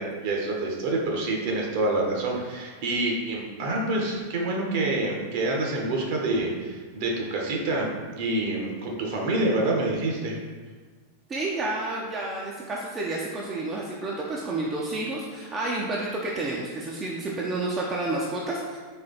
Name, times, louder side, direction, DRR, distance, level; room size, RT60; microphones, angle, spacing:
voice 1, 0.0-7.9 8.2-10.4, right 2 dB, 50° right, -1 dB, 1.0 m, -27 dB
voice 2, 11.3-18.8, right 2 dB, 25° right, -3 dB, 0.6 m, -30 dB
4.3 x 3.1 x 3.8 m, 1.4 s
figure-of-eight pair, 90°, 0 cm